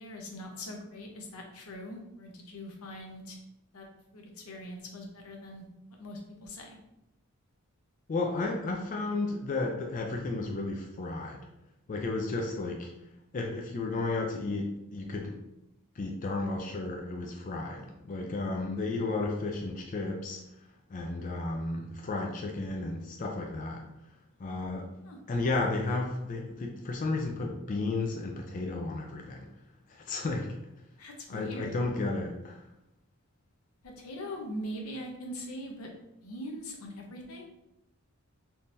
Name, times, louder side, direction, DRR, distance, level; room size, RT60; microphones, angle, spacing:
voice 1, 0.0-3.4 3.7-3.9 4.1-5.6 5.9-6.8 25.0-25.2 31.0-31.9 33.8-35.9 36.2-37.5, equal, 85° left, 2 dB, 0.7 m, -41 dB
voice 2, 8.1-11.4 11.9-12.9 13.3-15.4 16.0-20.4 20.9-23.8 24.4-24.9 25.3-29.5 29.9-30.6 31.3-32.7, left 3 dB, 40° left, 1 dB, 0.4 m, -33 dB
3.6 x 2.8 x 2.6 m, 0.85 s
head